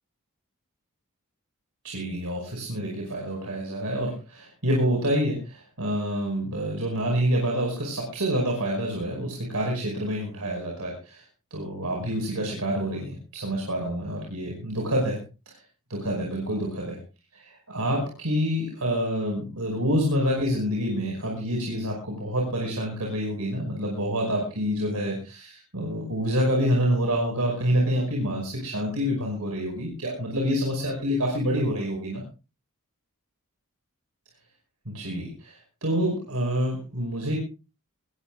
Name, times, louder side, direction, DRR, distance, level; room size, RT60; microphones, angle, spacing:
voice 1, 1.8-11.2 11.5-15.2 15.5-15.6 15.9-17.0 17.3-32.2 34.9-37.4, equal, 80° right, 0 dB, 5.5 m, -27 dB
21.5 x 20.5 x 2.4 m, 0.33 s
head